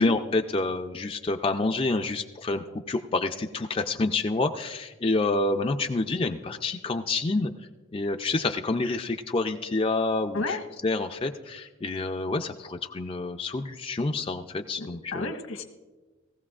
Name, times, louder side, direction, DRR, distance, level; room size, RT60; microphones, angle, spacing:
voice 1, 0.0-7.5 7.9-15.3, left 3 dB, 25° left, 4 dB, 0.4 m, -28 dB
voice 2, 14.8-15.6, left 2 dB, 85° left, 3 dB, 1.3 m, -31 dB
18.5 x 15.5 x 2.4 m, 1.2 s
head